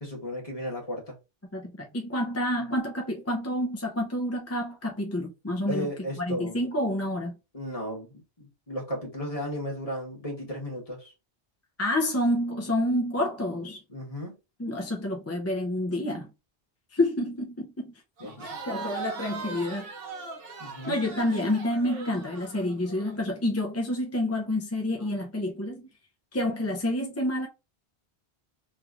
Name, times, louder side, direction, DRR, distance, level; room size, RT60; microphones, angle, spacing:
voice 1, 0.0-1.2 5.7-6.6 7.5-11.1 13.9-14.4 18.2-18.5 20.6-21.0, equal, 35° left, 1.5 m, -35 dB
voice 2, 1.5-5.9 6.2-7.3 11.8-13.8 14.6-16.3 16.9-17.9 18.4-19.9 20.9-25.9 26.3-27.5, left 1 dB, 20° left, 0.5 m, -28 dB
Crowd, 18.2-23.2, right 4 dB, 65° right, 0.9 m, -39 dB
3.2 x 3.0 x 2.4 m
omnidirectional pair, 1.1 m